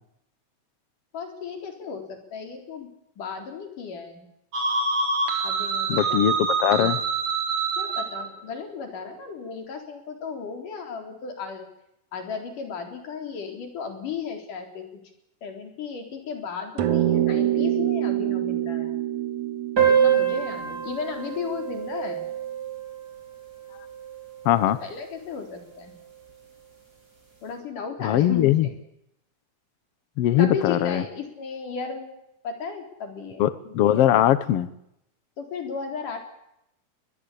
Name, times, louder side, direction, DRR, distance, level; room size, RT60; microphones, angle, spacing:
voice 1, 1.1-2.9 3.2-4.3 5.4-6.2 7.8-11.7 12.1-14.9 15.4-19.0 19.9-22.3 24.8-25.9 27.4-28.8 30.4-33.5 33.8-34.1 35.4-36.2, left 6 dB, 80° left, 4 dB, 5.3 m, -35 dB
sound 1, 4.5-8.3, right 4 dB, 50° right, 4.7 m, -26 dB
voice 2, 5.9-7.0 24.5-24.8 28.0-28.7 30.2-31.0 33.4-34.7, left 12 dB, 65° left, 15 dB, 1.6 m, -21 dB
sound 2, 16.8-21.4, right 12 dB, 70° right, 2.6 m, -26 dB
sound 3, 19.8-24.7, right 8 dB, 30° right, 6.3 m, -26 dB
22.5 x 20.5 x 8.5 m, 0.81 s
omnidirectional pair, 3.6 m